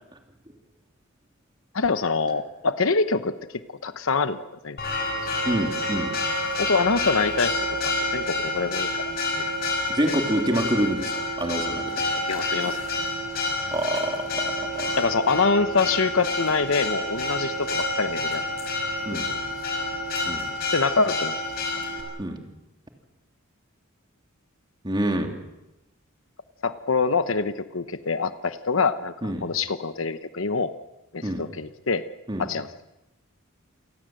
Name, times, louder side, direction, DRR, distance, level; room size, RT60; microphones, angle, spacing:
voice 1, 1.7-3.3 3.8-4.8 6.6-9.0 10.1-10.2 12.3-12.8 15.0-18.4 19.1-19.2 20.7-21.3 26.6-29.1 29.4-30.7 31.1-32.0 32.4-32.7, left 4 dB, 65° left, 11 dB, 1.0 m, -25 dB
Church bell, 4.8-22.0, left 2 dB, 45° left, 6.0 m, -28 dB
voice 2, 5.4-6.1 9.9-12.3 13.7-15.0 19.0-19.3 20.2-20.5 22.2-22.4 24.8-25.3 29.2-29.5 31.2-31.4 32.3-32.5, right 1 dB, 20° right, 3 dB, 3.1 m, -27 dB
28.0 x 19.5 x 7.8 m, 0.94 s
head